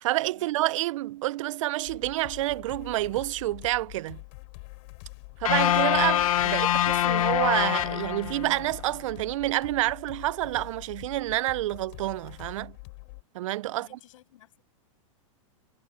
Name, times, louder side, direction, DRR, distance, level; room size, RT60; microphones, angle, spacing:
voice 1, 0.0-4.2 5.4-12.8 13.3-13.9, right 16 dB, 65° right, 0.5 m, -28 dB
sound 1, 1.8-13.2, left 31 dB, 55° left, 4.0 m, -45 dB
sound 2, 5.5-8.7, left 12 dB, 90° left, 0.5 m, -24 dB
voice 2, 13.7-14.7, left 14 dB, 70° left, 6.4 m, -55 dB
hypercardioid pair, 125°, 17 cm